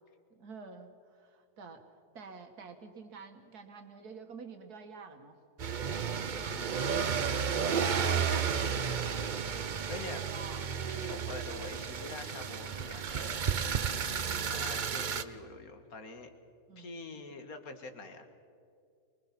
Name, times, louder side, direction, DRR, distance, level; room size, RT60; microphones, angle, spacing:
voice 1, 0.4-1.8 2.1-5.4 6.7-7.1 7.6-9.5 10.1-10.7 11.6-11.8 13.8-14.2 16.7-16.9, right 5 dB, 75° right, 6 dB, 2.2 m, -49 dB
sound 1, 5.6-15.2, right 6 dB, 45° right, 0.6 m, -32 dB
voice 2, 6.4-7.3 9.9-10.2 10.9-13.4 14.5-16.3 16.8-18.3, left 3 dB, 65° left, 6 dB, 2.1 m, -45 dB
23.5 x 21.5 x 6.0 m, 2.4 s
omnidirectional pair, 1.7 m